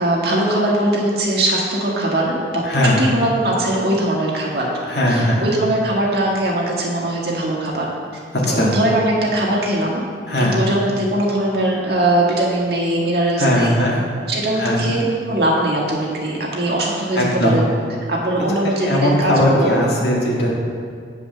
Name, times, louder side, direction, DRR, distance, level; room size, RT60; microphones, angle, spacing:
voice 1, 0.0-4.7 5.1-7.9 8.5-10.0 10.4-13.8 14.3-17.7 18.1-19.8, right 1 dB, 60° right, -3 dB, 1.7 m, -20 dB
voice 2, 2.6-3.0 4.9-5.4 8.3-8.7 10.3-10.6 13.4-14.0 14.5-14.9 17.1-17.6 18.6-20.5, left 1 dB, 65° left, -3 dB, 1.8 m, -18 dB
8.5 x 4.9 x 6.5 m, 2.1 s
head